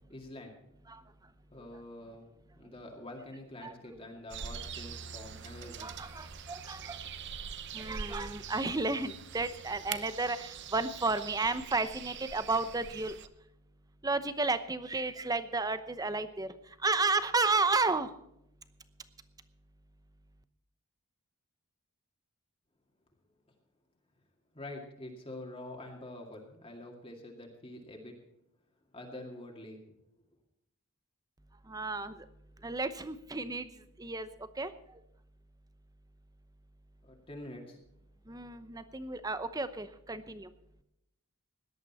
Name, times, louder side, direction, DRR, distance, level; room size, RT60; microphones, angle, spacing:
voice 1, 0.1-0.6 1.5-2.3 2.6-5.9 6.8-6.9 24.5-28.2 28.9-29.8 37.0-37.8, left 1 dB, 25° left, 0 dB, 2.2 m, -46 dB
sound 1, 4.3-13.3, right 6 dB, 50° right, 0.8 m, -44 dB
voice 2, 5.8-7.1 7.7-13.2 14.0-18.2 31.6-32.3 32.6-33.7 34.0-35.0 38.3-40.5, right 3 dB, 15° right, 12 dB, 0.8 m, -33 dB
18.0 x 11.5 x 4.2 m, 0.81 s
head